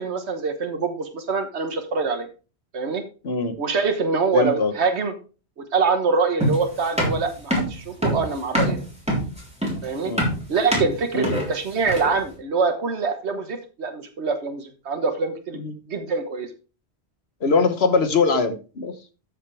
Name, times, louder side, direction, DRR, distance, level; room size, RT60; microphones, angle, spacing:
voice 1, 0.0-2.3 2.7-3.0 3.6-5.1 5.6-8.8 9.8-10.1 10.5-15.6 15.9-16.5, right 4 dB, 90° right, 7 dB, 1.5 m, -24 dB
voice 2, 3.2-3.5 4.3-4.7 10.0-10.3 11.1-11.3 15.5-15.8 17.4-18.9, left 4 dB, 70° left, 10 dB, 1.4 m, -22 dB
sound 1, 6.4-12.2, equal, 5° right, 3.4 m, -24 dB
13.0 x 6.6 x 3.3 m, 0.34 s
omnidirectional pair, 1.1 m